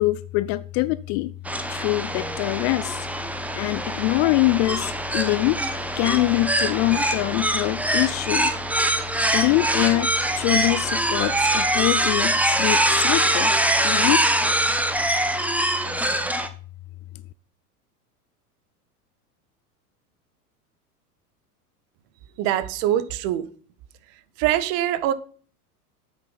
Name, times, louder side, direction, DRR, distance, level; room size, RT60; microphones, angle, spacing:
voice 1, 0.0-1.3 1.7-3.1 3.5-5.6 6.0-8.5 9.3-13.5 13.8-14.2, left 19 dB, 35° left, 0.4 m, -24 dB
sound 1, 1.4-16.5, right 1 dB, 5° right, 1.1 m, -23 dB
voice 2, 22.4-23.5 24.1-25.1, right 12 dB, 50° right, 1.4 m, -24 dB
9.0 x 8.8 x 5.7 m
hypercardioid pair, 90°, 46 cm